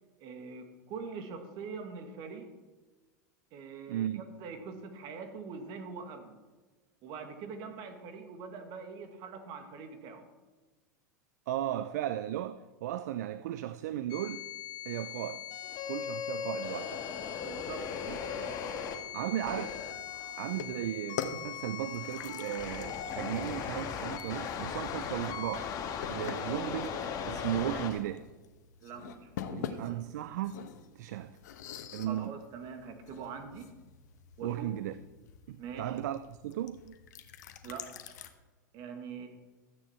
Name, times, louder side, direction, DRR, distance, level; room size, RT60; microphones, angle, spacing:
voice 1, 0.2-2.5 3.5-6.4 7.0-10.3 17.4-18.6 28.8-30.0 32.0-33.8 34.4-34.7 35.6-36.0 37.6-38.3 38.7-39.3, right 5 dB, 50° right, 1.9 m, -44 dB
voice 2, 3.9-4.3 11.5-14.4 14.8-15.5 15.9-17.0 18.1-18.2 19.1-19.8 20.4-25.7 26.1-28.3 29.6-31.4 31.9-32.3 34.4-35.0 35.5-36.9, right 12 dB, 70° right, 0.5 m, -36 dB
sound 1, 14.1-27.9, left 7 dB, 40° left, 1.6 m, -38 dB
sound 2, 20.5-38.3, left 8 dB, 70° left, 1.1 m, -46 dB
14.0 x 9.3 x 4.4 m
hypercardioid pair, 95°, 10 cm